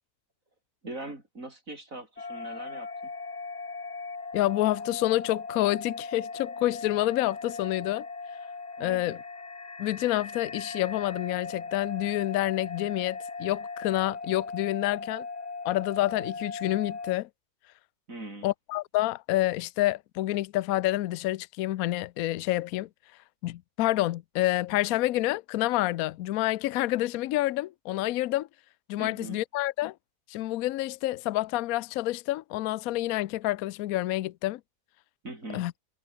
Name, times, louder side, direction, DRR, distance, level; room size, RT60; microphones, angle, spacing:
voice 1, 0.8-3.1 8.8-9.1 18.1-18.5 29.0-29.4 35.2-35.7, right 2 dB, 60° right, 6.1 m, -41 dB
sound 1, 2.2-17.2, left 4 dB, 30° left, 1.4 m, -39 dB
voice 2, 4.3-8.1 8.8-9.2 9.8-15.3 15.6-17.3 18.4-22.9 23.4-28.5 28.9-29.9 30.3-34.6 35.5-35.7, left 16 dB, 70° left, 1.0 m, -28 dB
omnidirectional pair, 1.6 m